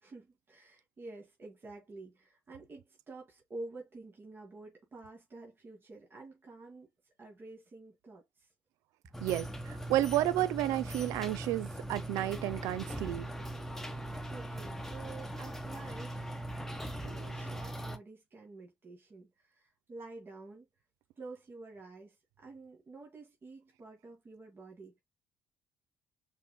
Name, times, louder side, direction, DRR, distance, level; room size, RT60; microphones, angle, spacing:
voice 1, 0.0-8.5 9.0-9.3 14.3-16.4 16.9-20.7 21.2-25.0, right 3 dB, 40° right, 2.1 m, -49 dB
sound 1, 9.1-18.0, right 1 dB, 5° left, 1.1 m, -40 dB
voice 2, 9.2-13.3, right 14 dB, 70° right, 0.5 m, -31 dB
5.6 x 3.7 x 2.2 m
hypercardioid pair, 50°, 6 cm